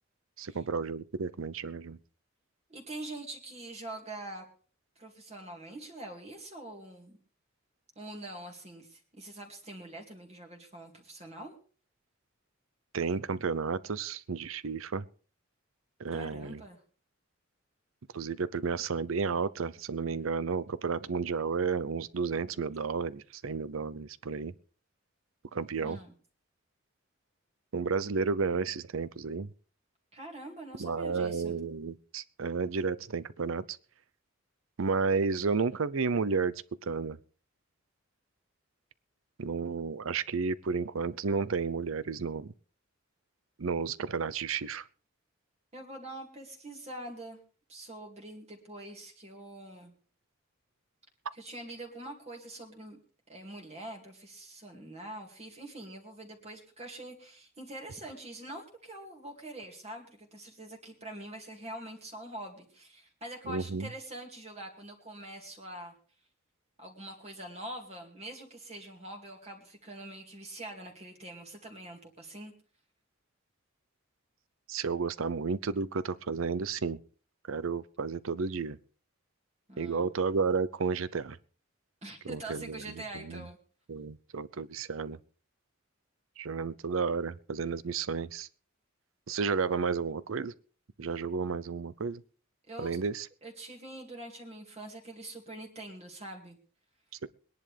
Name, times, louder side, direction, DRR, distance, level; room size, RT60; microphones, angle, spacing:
voice 1, 0.4-2.0 12.9-15.0 16.0-16.6 18.1-24.5 25.5-26.0 27.7-29.5 30.8-33.8 34.8-37.2 39.4-42.5 43.6-44.8 63.5-63.9 74.7-77.0 77.5-78.8 79.8-81.4 82.3-82.8 83.1-83.5 83.9-85.2 86.4-88.5 89.3-90.5 91.0-92.2 92.8-93.3 97.2-97.3, right 5 dB, 80° right, 18 dB, 0.6 m, -32 dB
voice 2, 2.7-4.5 5.0-7.2 8.0-11.5 16.1-16.8 25.8-26.1 30.1-31.6 45.7-47.4 47.7-49.9 51.3-53.0 53.3-65.9 66.8-72.5 79.7-80.1 82.0-83.6 92.7-93.0 93.4-96.6, right 1 dB, 35° right, 1 dB, 2.3 m, -44 dB
22.0 x 10.5 x 3.4 m, 0.39 s
head